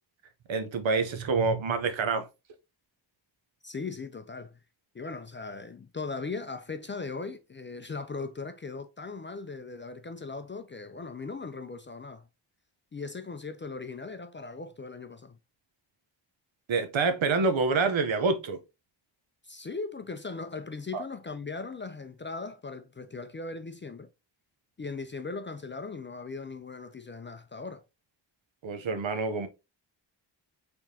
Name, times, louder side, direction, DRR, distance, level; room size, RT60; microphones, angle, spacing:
voice 1, 0.5-2.3 16.7-18.6 20.9-21.0 28.6-29.5, right 4 dB, 75° right, 0.9 m, -27 dB
voice 2, 3.6-4.6 4.9-12.3 12.9-15.4 19.4-24.1 24.8-27.8, left 4 dB, 25° left, 0.3 m, -39 dB
4.6 x 3.5 x 2.7 m
wide cardioid pair, 90°, 47 cm